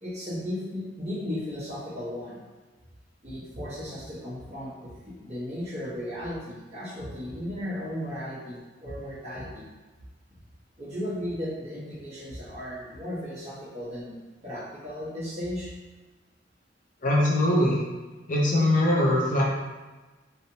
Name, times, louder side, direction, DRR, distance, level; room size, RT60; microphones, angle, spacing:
voice 1, 0.0-2.4 3.2-9.6 10.8-15.7, equal, 35° right, -10 dB, 1.3 m, -35 dB
voice 2, 17.0-17.8 18.3-19.4, left 1 dB, 45° left, -3 dB, 0.6 m, -22 dB
3.3 x 2.7 x 2.7 m, 1.2 s
head